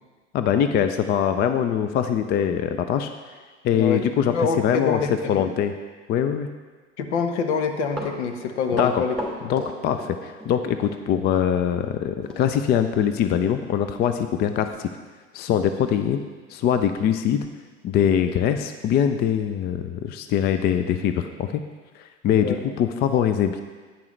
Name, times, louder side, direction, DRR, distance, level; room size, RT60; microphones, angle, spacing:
voice 1, 0.3-3.1 3.6-5.7 6.1-6.5 8.7-9.0 9.5-14.9 15.3-16.2 16.5-17.5 17.8-21.6 22.0-23.6, left 9 dB, 30° left, 8 dB, 0.5 m, -23 dB
voice 2, 3.7-4.0 4.3-5.5 7.0-9.1 9.4-9.5 22.4-22.6, left 5 dB, 65° left, 6 dB, 1.1 m, -26 dB
Run, 7.9-10.6 10.8-11.0 12.2-12.4 12.8-12.9 13.4-13.5 13.8-14.0 14.5-14.6, equal, ahead, 2.7 m, -34 dB
10.5 x 9.1 x 3.2 m, 1.4 s
figure-of-eight pair, 80°, 36 cm